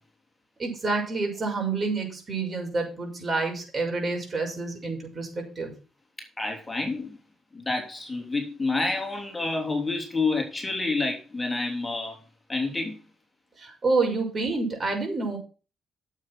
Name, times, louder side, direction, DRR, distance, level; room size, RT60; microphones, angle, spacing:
voice 1, 0.6-5.7 13.6-15.4, right 3 dB, 35° right, 6.2 m, -28 dB
voice 2, 6.4-7.2 7.5-12.2 12.5-13.0, left 3 dB, 20° left, 3.1 m, -28 dB
9.5 x 7.6 x 6.2 m
cardioid pair, 90°, 0 cm